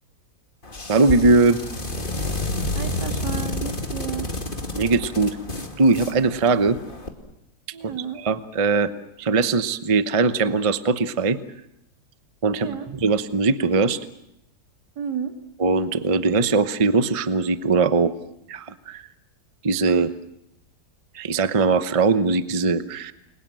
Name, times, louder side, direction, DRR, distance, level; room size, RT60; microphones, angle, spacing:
sound 1, 0.6-7.1, left 2 dB, 30° left, 2.5 m, -30 dB
voice 1, 0.9-1.6 4.7-5.4 5.8-6.8 7.8-8.9 9.2-11.4 12.4-14.0 15.6-18.1 18.5-19.0 19.6-20.1 21.1-23.1, right 4 dB, 25° right, 12 dB, 0.8 m, -20 dB
voice 2, 2.7-4.3 7.7-8.2 12.5-12.9 15.0-15.3, right 8 dB, 75° right, 5 dB, 3.0 m, -32 dB
29.5 x 22.5 x 7.6 m, 0.80 s
omnidirectional pair, 1.8 m